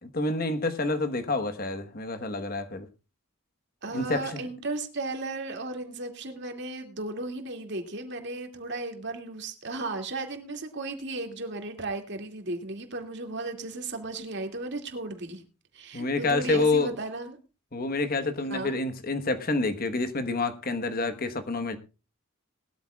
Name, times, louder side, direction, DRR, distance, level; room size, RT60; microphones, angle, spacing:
voice 1, 0.1-2.9 3.9-4.5 15.9-16.9 17.7-21.8, left 3 dB, 45° left, 1.2 m, -28 dB
voice 2, 3.8-15.4 15.7-17.4 18.5-18.8, right 2 dB, 55° right, 2.4 m, -35 dB
20.0 x 13.0 x 2.4 m
head